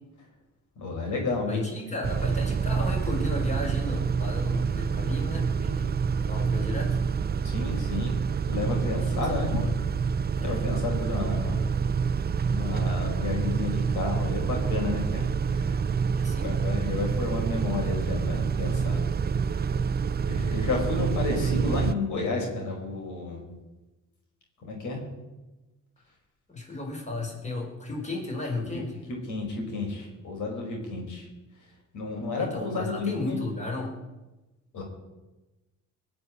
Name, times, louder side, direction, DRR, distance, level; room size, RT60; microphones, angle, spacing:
voice 1, 0.7-1.6 7.4-8.2 8.5-9.6 10.4-11.6 12.5-15.8 16.4-19.1 19.4-19.7 20.3-23.4 24.6-25.1 29.3-31.3 31.9-33.4 34.7-34.8, left 3 dB, 75° left, 0 dB, 5.1 m, -31 dB
voice 2, 1.5-5.9 6.2-7.0 9.0-9.7 10.3-10.7 16.0-16.5 26.5-29.1 32.4-34.0, left 2 dB, 25° left, -1 dB, 4.9 m, -34 dB
Car / Idling / Accelerating revving vroom, 2.0-21.9, right 6 dB, 30° right, 0.6 m, -27 dB
20.0 x 7.0 x 9.8 m, 1.1 s
cardioid pair, 90°, 30 cm